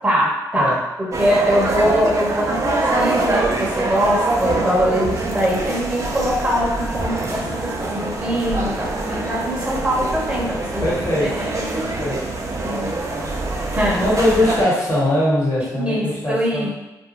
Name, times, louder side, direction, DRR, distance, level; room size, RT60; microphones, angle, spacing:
voice 1, 0.0-11.8 12.5-13.0 13.7-14.2 15.8-16.7, equal, 15° right, -5 dB, 0.9 m, -22 dB
sound 1, 1.1-14.6, right 2 dB, 40° right, 0.5 m, -24 dB
voice 2, 10.8-11.3 11.7-12.2 14.0-16.7, left 1 dB, 40° left, -6 dB, 1.3 m, -21 dB
2.5 x 2.2 x 3.0 m, 1.0 s
supercardioid pair, 60°, 8 cm